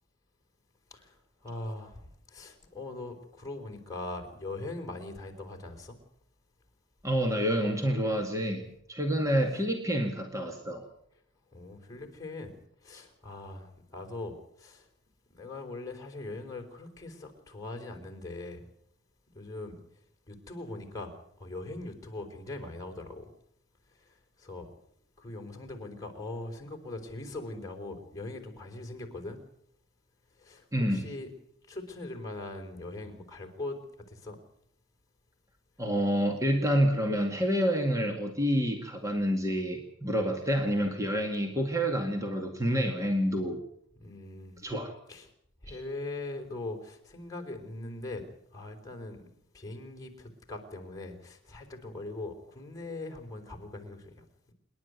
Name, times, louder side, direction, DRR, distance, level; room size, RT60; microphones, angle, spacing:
voice 1, 0.9-6.0 11.5-12.6 12.8-14.9 15.3-18.6 19.3-19.8 20.3-23.3 23.9-24.7 25.2-29.4 30.4-31.3 31.7-33.8 34.1-34.4 44.0-44.7 45.1-45.3 45.6-49.3 49.5-54.5, left 2 dB, 15° left, 2 dB, 4.2 m, -41 dB
voice 2, 7.0-10.9 30.7-31.1 35.8-43.6 44.6-44.9 45.7-45.8, equal, 15° right, 3 dB, 2.0 m, -28 dB
27.5 x 11.5 x 9.5 m, 0.71 s
head